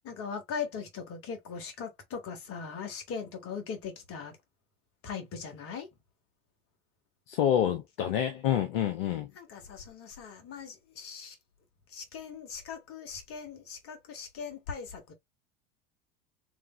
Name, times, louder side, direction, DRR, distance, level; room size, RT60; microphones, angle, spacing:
voice 1, 0.0-4.4 5.0-5.9 9.3-11.4 11.9-15.1, left 6 dB, 50° left, 1.7 m, -40 dB
voice 2, 7.3-9.3, left 10 dB, 70° left, 0.7 m, -27 dB
3.4 x 3.2 x 3.1 m
figure-of-eight pair, 70°, 30 cm